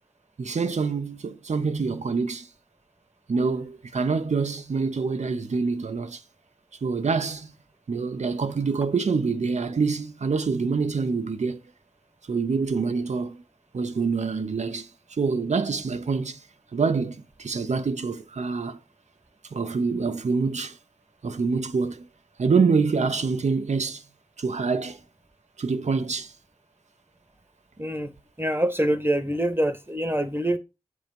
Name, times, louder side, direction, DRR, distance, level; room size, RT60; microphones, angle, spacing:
voice 1, 0.4-2.5 3.3-6.2 6.8-7.5 7.9-11.6 12.3-13.4 13.7-16.4 16.7-18.8 19.5-20.8 21.2-22.1 22.4-24.0 24.4-25.0 25.6-26.3, right 4 dB, 90° right, 0.7 m, -26 dB
voice 2, 27.8-28.1 28.4-30.6, right 1 dB, 20° right, 0.9 m, -25 dB
7.7 x 3.4 x 5.2 m
cardioid pair, 40°, 12 cm